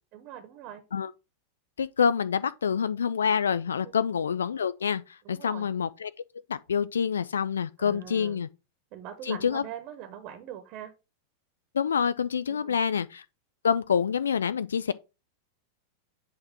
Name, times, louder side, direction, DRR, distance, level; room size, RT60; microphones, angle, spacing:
voice 1, 0.1-0.8 3.8-3.9 5.2-5.7 7.8-8.4 8.9-10.9 12.5-12.8, right 10 dB, 40° right, 1.1 m, -42 dB
voice 2, 1.8-5.0 5.3-6.1 6.5-8.5 9.3-9.6 11.7-13.2 13.6-14.9, left 7 dB, 70° left, 0.3 m, -27 dB
8.5 x 3.0 x 5.9 m
figure-of-eight pair, 90°, 0 cm